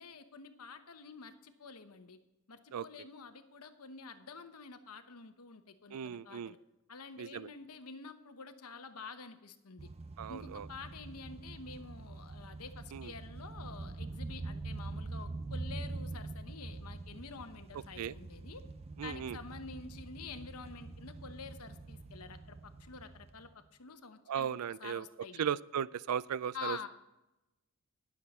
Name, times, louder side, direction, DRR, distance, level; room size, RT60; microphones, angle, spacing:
voice 1, 0.0-2.2 2.5-6.6 6.9-9.9 10.3-18.6 19.0-23.5 23.8-24.5 24.8-25.4 26.5-26.9, left 5 dB, 80° left, 9 dB, 1.0 m, -48 dB
voice 2, 5.9-6.5 7.2-7.5 10.2-10.7 12.9-13.1 18.0-18.1 19.0-19.4 24.3-25.1 25.4-26.9, right 8 dB, 85° right, 20 dB, 0.4 m, -36 dB
sound 1, 9.8-23.6, right 3 dB, 30° right, 0.5 m, -45 dB
20.0 x 7.4 x 4.2 m, 0.97 s
head